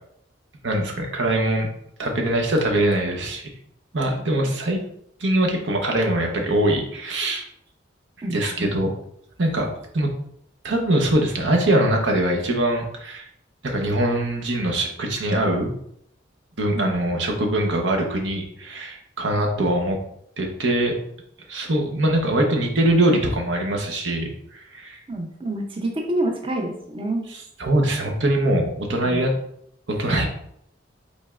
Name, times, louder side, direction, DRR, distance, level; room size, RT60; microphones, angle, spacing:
voice 1, 0.6-1.7 2.0-3.5 3.9-4.8 5.2-7.4 8.3-8.9 9.4-9.7 9.9-10.1 10.6-13.3 13.6-15.7 16.6-20.0 20.4-21.0 21.5-24.3 24.7-25.0 27.3-29.3 29.9-30.2, right 1 dB, 75° right, 2 dB, 0.9 m, -22 dB
voice 2, 8.2-8.7 16.7-17.2 25.1-27.2, right 1 dB, 30° right, 1 dB, 0.6 m, -28 dB
5.2 x 4.2 x 2.4 m, 0.71 s
head